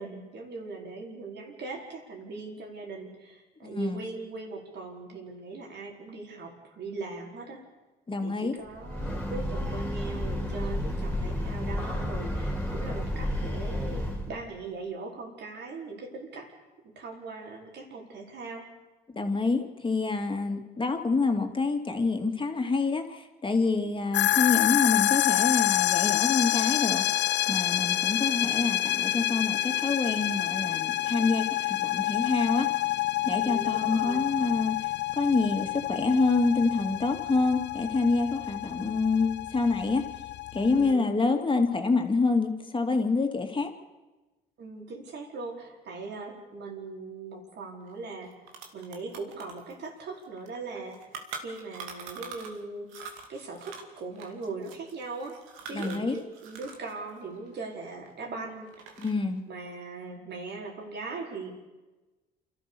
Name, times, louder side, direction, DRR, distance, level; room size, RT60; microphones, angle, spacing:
voice 1, 0.0-7.7 8.2-16.5 16.8-18.7 20.4-20.7 33.4-34.3 40.7-41.0 44.6-55.4 55.7-59.0 59.5-61.5, right 3 dB, 60° right, 1 dB, 4.7 m, -40 dB
voice 2, 3.6-4.0 8.1-8.5 19.1-27.0 27.5-32.7 33.2-40.0 40.5-43.7 55.7-56.2 59.0-59.4, left 3 dB, 25° left, 4 dB, 2.7 m, -27 dB
Breathing / Train, 8.7-14.4, left 1 dB, 5° left, 4.1 m, -31 dB
sound 1, 24.1-40.9, left 15 dB, 65° left, 0.6 m, -28 dB
sound 2, 47.9-48.0 48.2-52.6 52.9-56.9 57.2-58.3 58.7-59.3, right 6 dB, 85° right, 2.4 m, -44 dB
28.0 x 13.0 x 7.1 m, 1.2 s
supercardioid pair, 65°, 20 cm